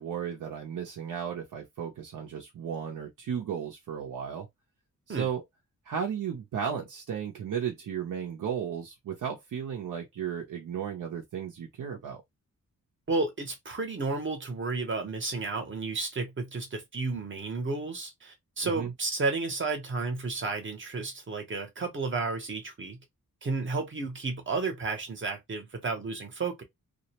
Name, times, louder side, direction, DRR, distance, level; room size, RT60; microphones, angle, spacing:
voice 1, 0.0-4.5 5.1-5.4 5.9-12.2 18.6-18.9, right 8 dB, 75° right, 0.6 m, -34 dB
voice 2, 13.1-23.0 23.4-26.6, right 3 dB, 40° right, 0.8 m, -32 dB
2.3 x 2.1 x 2.8 m
wide cardioid pair, 170°, 32 cm